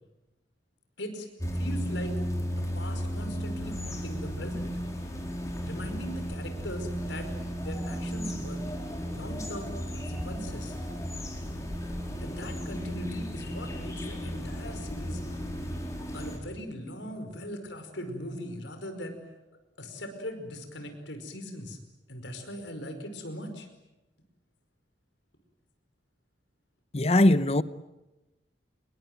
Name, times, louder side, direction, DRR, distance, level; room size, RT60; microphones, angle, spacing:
sound 1, 1.4-16.4, equal, 15° left, 4.5 m, -34 dB
voice 1, 1.5-2.1 2.6-4.7 5.6-7.3 7.6-8.6 9.1-10.8 12.2-15.2 16.1-19.2 19.8-21.8 22.1-23.7, equal, 80° left, 5.2 m, -40 dB
voice 2, 26.9-27.6, left 1 dB, 35° left, 0.8 m, -20 dB
26.5 x 22.0 x 9.3 m
head